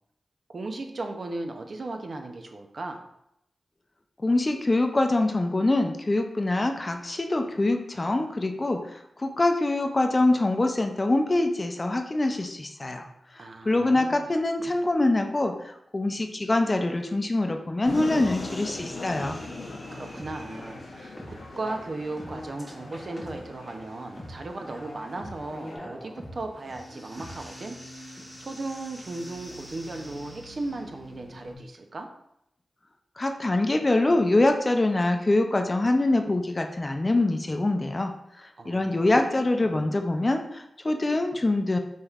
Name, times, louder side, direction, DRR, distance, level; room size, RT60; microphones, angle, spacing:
voice 1, 0.5-3.1 13.4-14.3 19.9-27.8 28.0-32.1 38.6-39.8, right 2 dB, 55° right, 4 dB, 0.5 m, -37 dB
voice 2, 4.2-8.8 9.2-13.1 13.7-19.4 33.2-38.1 38.7-41.8, left 2 dB, 35° left, 5 dB, 0.5 m, -24 dB
sound 1, 17.8-25.8, left 3 dB, 80° left, 0.8 m, -40 dB
sound 2, 17.9-31.5, equal, 5° left, 1.0 m, -44 dB
5.1 x 3.2 x 2.4 m, 0.79 s
cardioid pair, 60°, 0 cm